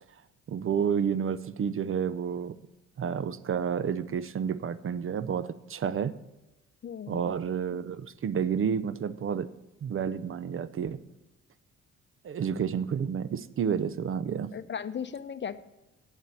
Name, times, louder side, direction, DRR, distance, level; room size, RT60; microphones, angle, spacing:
voice 1, 0.5-2.6 3.0-6.1 7.1-9.5 9.8-11.0 12.2-14.5, right 7 dB, 45° right, 16 dB, 0.6 m, -30 dB
voice 2, 6.8-7.3 14.5-15.6, left 7 dB, 40° left, 12 dB, 0.7 m, -36 dB
8.3 x 7.3 x 8.4 m, 1.0 s
cardioid pair, 90°, 30 cm